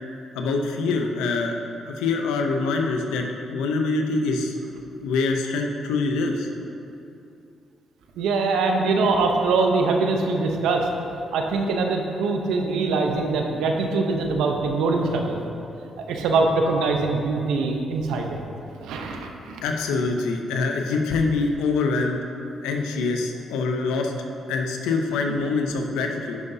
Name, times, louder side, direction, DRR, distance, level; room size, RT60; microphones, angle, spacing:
voice 1, 0.3-1.6 1.9-4.6 5.0-6.5 19.6-22.2 22.6-24.1 24.5-26.4, left 3 dB, 90° left, 3 dB, 0.6 m, -25 dB
voice 2, 8.2-10.9 11.3-15.4 16.0-18.4 18.8-19.6, right 3 dB, 85° right, 3 dB, 0.7 m, -23 dB
10.5 x 5.4 x 2.7 m, 2.7 s
supercardioid pair, 65°, 0 cm